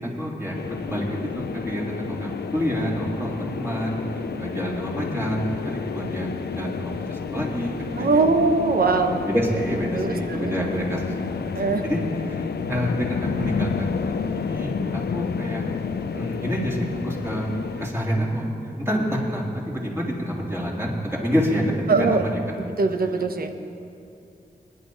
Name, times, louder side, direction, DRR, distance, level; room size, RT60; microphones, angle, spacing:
voice 1, 0.2-4.0 4.4-5.5 5.8-6.3 6.5-8.2 8.8-11.3 11.5-12.0 12.2-15.6 16.1-17.5 17.8-22.4, equal, 15° right, -4 dB, 3.4 m, -28 dB
sound 1, 0.5-17.9, left 6 dB, 75° left, 0.5 m, -30 dB
voice 2, 4.1-4.4 8.0-9.2 9.9-10.5 11.5-11.8 21.9-22.3 22.5-23.5, right 4 dB, 65° right, 7 dB, 1.0 m, -22 dB
21.5 x 10.5 x 4.0 m, 2.6 s
cardioid pair, 60°, 17 cm